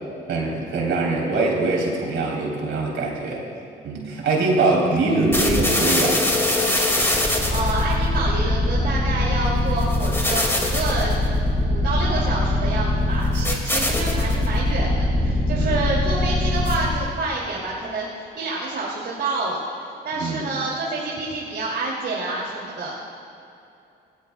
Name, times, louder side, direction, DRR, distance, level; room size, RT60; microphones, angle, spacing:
voice 1, 0.3-3.4 3.8-6.4 15.5-15.8 20.1-20.5, right 3 dB, 75° right, -2 dB, 3.7 m, -23 dB
sound 1, 5.3-17.1, left 1 dB, 10° left, 2.2 m, -22 dB
voice 2, 7.5-11.2 11.6-19.6 20.0-22.9, right 2 dB, 60° right, -6 dB, 2.7 m, -28 dB
18.5 x 18.0 x 2.3 m, 2.7 s
cardioid pair, 90°, 20 cm